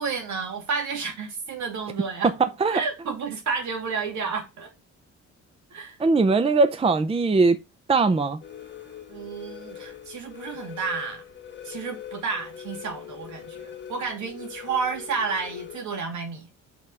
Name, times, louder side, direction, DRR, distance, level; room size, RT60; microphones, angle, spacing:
voice 1, 0.0-2.3 2.7-4.7 5.7-6.0 9.1-11.2 11.6-16.5, right 5 dB, 70° right, 2.7 m, -31 dB
voice 2, 6.0-7.6 7.9-8.4, right 3 dB, 20° right, 0.6 m, -20 dB
sound 1, 8.4-15.8, left 9 dB, 40° left, 1.9 m, -42 dB
5.5 x 4.6 x 5.5 m
cardioid pair, 90°, 30 cm